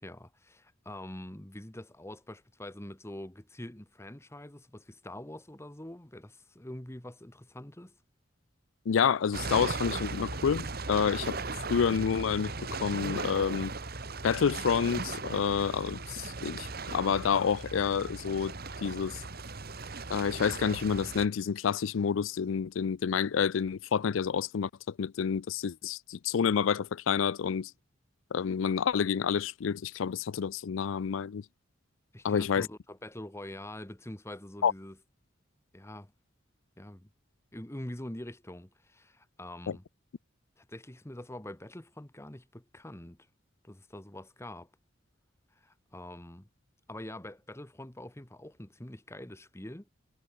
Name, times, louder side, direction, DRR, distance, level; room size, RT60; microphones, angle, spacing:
voice 1, 0.0-8.0 32.1-35.0 35.7-36.1 36.8-37.1 37.5-39.8 40.6-43.2 43.6-44.7 45.5-46.5 46.9-49.9, left 1 dB, 15° left, 1.3 m, -45 dB
voice 2, 8.9-11.4 11.7-12.5 12.8-13.7 14.2-19.2 20.1-27.7 28.3-31.4 32.2-32.7 34.6-34.7 39.7-39.8, left 7 dB, 90° left, 0.4 m, -29 dB
sound 1, 9.3-21.3, right 3 dB, 55° right, 2.3 m, -37 dB
head